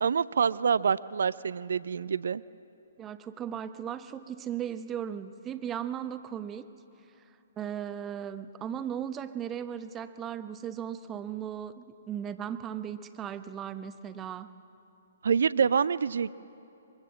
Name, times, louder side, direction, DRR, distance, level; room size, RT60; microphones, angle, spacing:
voice 1, 0.0-2.4 15.2-16.4, right 6 dB, 65° right, 18 dB, 0.5 m, -26 dB
voice 2, 3.0-6.7 7.6-14.5, right 9 dB, 20° right, 10 dB, 1.0 m, -37 dB
24.5 x 23.0 x 7.6 m, 2.8 s
figure-of-eight pair, 125°, 0 cm